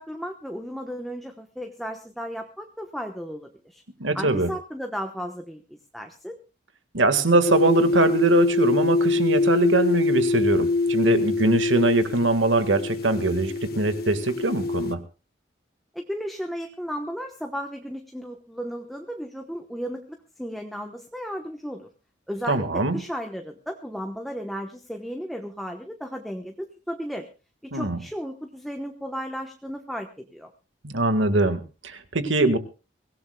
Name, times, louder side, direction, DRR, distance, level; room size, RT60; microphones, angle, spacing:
voice 1, 0.0-3.8 4.1-6.4 15.9-21.9 22.3-27.3 27.6-30.5, equal, ahead, 3 dB, 1.1 m, -34 dB
voice 2, 4.0-4.5 6.9-15.0 22.5-23.0 27.7-28.0 30.8-32.6, right 2 dB, 90° right, 9 dB, 1.8 m, -22 dB
sound 1, 7.5-14.9, left 3 dB, 55° left, 1.6 m, -24 dB
24.0 x 17.0 x 2.3 m, 0.32 s
head